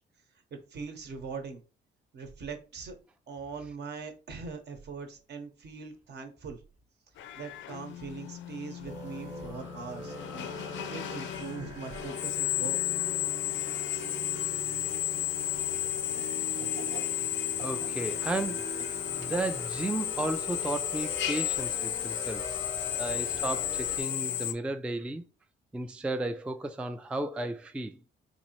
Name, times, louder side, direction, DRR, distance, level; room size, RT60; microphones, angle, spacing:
voice 1, 0.7-1.6 2.1-3.0 3.3-6.6 7.4-10.5 10.9-12.8, right 5 dB, 60° right, 1.0 m, -41 dB
Drill, 7.2-24.5, left 12 dB, 70° left, 0.4 m, -33 dB
sound 1, 8.9-24.0, right 3 dB, 20° right, 0.9 m, -44 dB
sound 2, 16.0-21.3, right 6 dB, 75° right, 0.6 m, -51 dB
voice 2, 17.6-18.7 19.1-22.7 23.0-25.2 25.7-28.0, right 2 dB, 5° right, 0.3 m, -34 dB
4.1 x 2.7 x 2.9 m
cardioid pair, 90°, 20 cm